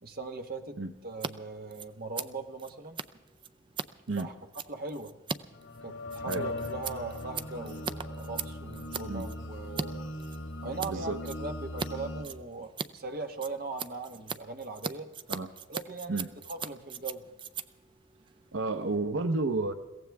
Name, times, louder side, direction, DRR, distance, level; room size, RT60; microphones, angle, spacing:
voice 1, 0.0-3.0 4.1-4.3 4.7-5.1 5.8-10.1 10.6-15.1 15.7-16.2 16.5-17.2, right 3 dB, 50° right, 5 dB, 1.3 m, -40 dB
Scissors, 1.1-1.3 1.6-9.9 10.2-10.9 11.2-11.9 12.2-18.9, right 5 dB, 25° right, 0.4 m, -39 dB
sound 1, 5.5-12.2, left 1 dB, 85° left, 2.3 m, -39 dB
voice 2, 10.9-11.2 15.3-15.5 16.1-16.3 18.5-19.7, right 3 dB, 80° right, 9 dB, 0.9 m, -31 dB
22.5 x 16.5 x 3.5 m, 1.1 s
head